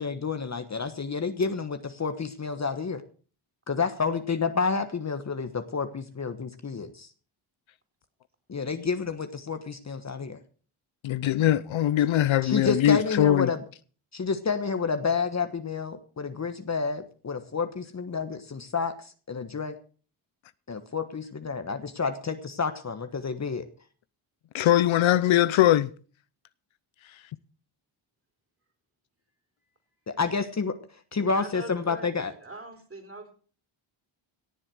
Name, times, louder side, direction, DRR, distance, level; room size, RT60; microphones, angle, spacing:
voice 1, 0.0-3.0 3.7-7.1 8.5-10.4 12.4-13.6 14.1-19.7 20.7-23.6 30.1-30.7 31.1-32.3, left 5 dB, 35° left, 1.3 m, -29 dB
voice 2, 11.0-13.5 24.5-25.9, left 12 dB, 65° left, 0.7 m, -21 dB
voice 3, 31.1-32.1 32.4-33.3, right 2 dB, 25° right, 4.2 m, -42 dB
17.5 x 7.5 x 6.2 m
cardioid pair, 95°, 50 cm